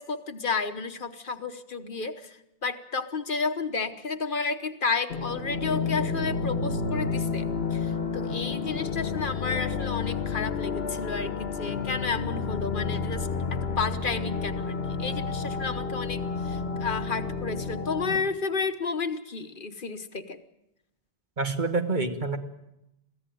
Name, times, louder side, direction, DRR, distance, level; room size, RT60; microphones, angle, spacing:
voice 1, 0.0-7.4 7.7-13.3 13.6-20.4, left 4 dB, 55° left, 9 dB, 1.3 m, -32 dB
sound 1, 5.1-18.2, left 5 dB, 80° left, 1.6 m, -30 dB
voice 2, 21.4-22.4, right 3 dB, 50° right, 6 dB, 1.7 m, -27 dB
22.5 x 15.5 x 9.1 m, 0.90 s
omnidirectional pair, 1.0 m